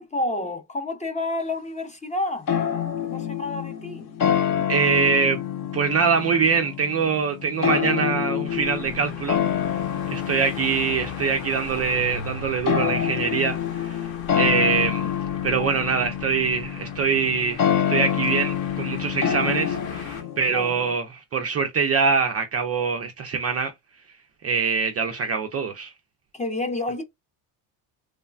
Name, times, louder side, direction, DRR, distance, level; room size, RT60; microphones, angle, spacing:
voice 1, 0.0-2.5 3.0-4.1 15.5-15.8 20.5-20.7 26.3-27.0, left 2 dB, 15° left, 0.6 m, -29 dB
sound 1, 2.5-20.9, left 9 dB, 40° left, 0.8 m, -27 dB
voice 2, 4.7-5.4 5.7-9.4 10.1-14.0 14.3-15.1 15.4-23.7 24.4-25.9, right 5 dB, 35° right, 0.4 m, -24 dB
sound 2, 8.5-20.2, left 4 dB, 65° left, 1.1 m, -39 dB
3.2 x 2.1 x 2.4 m
supercardioid pair, 100°, 49 cm